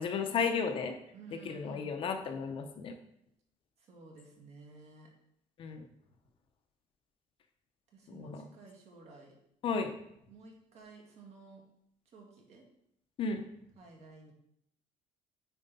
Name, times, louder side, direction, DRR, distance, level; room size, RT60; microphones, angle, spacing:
voice 1, 0.0-1.0 1.3-2.9 5.6-5.8 8.1-8.5 9.6-9.9 13.2-13.4, left 5 dB, 40° left, 6 dB, 0.7 m, -34 dB
voice 2, 1.1-2.0 3.8-5.1 7.9-9.3 10.3-11.6 12.1-12.6 13.8-14.3, right 3 dB, 55° right, 0 dB, 2.0 m, -54 dB
8.9 x 4.6 x 4.1 m, 0.76 s
cardioid pair, 160°, 14 cm